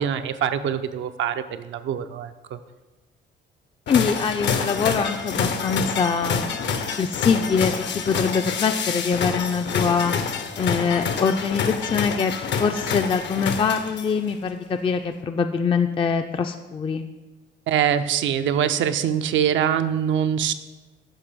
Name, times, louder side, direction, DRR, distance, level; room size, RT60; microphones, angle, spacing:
voice 1, 0.0-2.6 17.7-20.5, right 9 dB, 75° right, 9 dB, 0.5 m, -24 dB
sound 1, 3.9-14.3, left 6 dB, 65° left, 0.7 m, -27 dB
voice 2, 3.9-6.4 7.0-10.1 10.6-12.3 12.6-17.0, left 5 dB, 25° left, 6 dB, 0.3 m, -23 dB
8.0 x 3.4 x 6.1 m, 1.2 s
cardioid pair, 90°, 20 cm